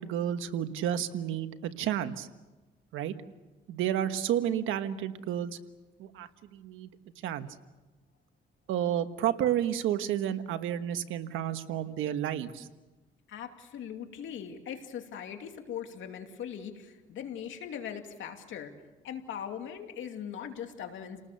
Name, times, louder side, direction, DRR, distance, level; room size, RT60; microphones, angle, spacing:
voice 1, 0.0-2.3 2.9-3.1 3.7-5.6 6.0-6.9 7.2-7.5 8.7-12.7, right 10 dB, 90° right, 9 dB, 1.4 m, -31 dB
voice 2, 13.3-18.7 19.0-21.2, left 8 dB, 75° left, 5 dB, 2.7 m, -40 dB
30.0 x 19.0 x 6.9 m, 1.1 s
cardioid pair, 90°, 20 cm